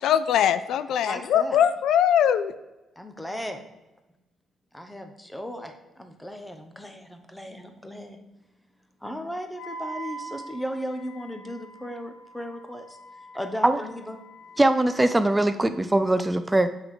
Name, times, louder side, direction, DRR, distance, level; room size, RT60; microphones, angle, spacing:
voice 1, 0.0-2.5, left 9 dB, 80° left, 13 dB, 0.4 m, -21 dB
voice 2, 0.9-1.6 3.0-3.6 4.7-8.2 9.0-13.0 13.3-14.2, equal, 5° left, 6 dB, 0.9 m, -36 dB
Wind instrument woodwind instrument, 9.5-15.7, right 2 dB, 65° left, 1.2 m, -43 dB
voice 3, 14.6-16.7, right 1 dB, 15° right, 10 dB, 0.4 m, -21 dB
7.9 x 3.7 x 4.9 m, 1.0 s
cardioid pair, 90°, 0 cm